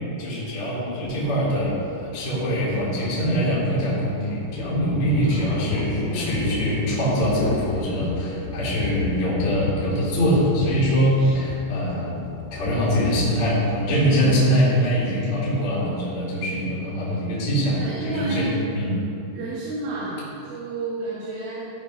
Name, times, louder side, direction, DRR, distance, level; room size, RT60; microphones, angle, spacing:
voice 1, 0.2-12.2 12.5-18.5 18.7-18.9, equal, 40° left, -8 dB, 2.3 m, -23 dB
Thunder, 1.0-15.8, left 5 dB, 90° left, 3.2 m, -33 dB
voice 2, 5.3-6.5 17.6-18.6 19.3-21.7, right 2 dB, 75° right, -10 dB, 4.2 m, -31 dB
14.5 x 4.8 x 5.3 m, 2.5 s
omnidirectional pair, 5.9 m